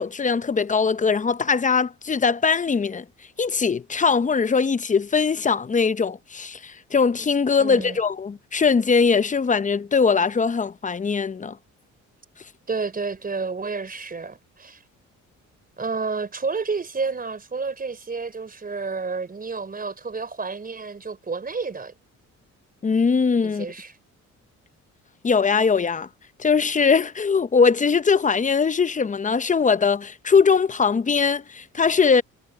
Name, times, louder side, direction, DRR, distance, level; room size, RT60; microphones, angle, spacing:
voice 1, 0.0-3.0 3.4-11.6 22.8-23.7 25.2-26.1 26.4-32.2, left 5 dB, 25° left, 0.7 m, -21 dB
voice 2, 7.6-8.0 12.7-14.8 15.8-21.9 23.4-24.0, right 4 dB, 30° right, 4.3 m, -30 dB
cardioid pair, 90°, 30 cm